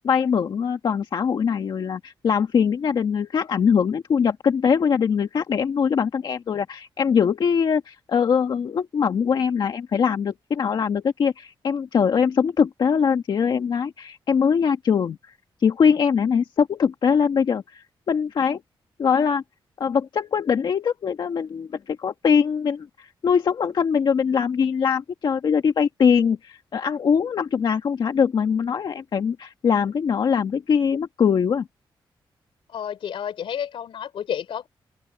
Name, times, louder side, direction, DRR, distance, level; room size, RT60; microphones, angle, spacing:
voice 1, 0.0-15.2 15.6-18.6 19.0-19.4 19.8-31.7, left 6 dB, 60° left, 1.6 m, -22 dB
voice 2, 32.7-34.7, left 9 dB, 85° left, 3.8 m, -30 dB
wide cardioid pair, 130°, 9 cm